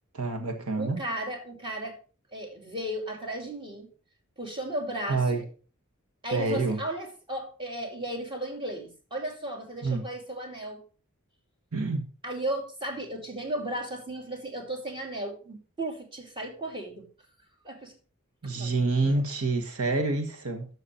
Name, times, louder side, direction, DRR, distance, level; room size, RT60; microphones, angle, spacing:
voice 1, 0.1-1.0 5.1-5.4 6.3-6.8 9.8-10.0 11.7-12.0 18.4-20.7, right 3 dB, 80° right, 1.6 m, -27 dB
voice 2, 0.8-2.0 2.3-3.9 4.4-5.4 6.2-10.8 12.2-17.1 17.6-17.9 18.5-19.3, right 1 dB, 25° right, 2.6 m, -35 dB
12.5 x 6.6 x 4.3 m
head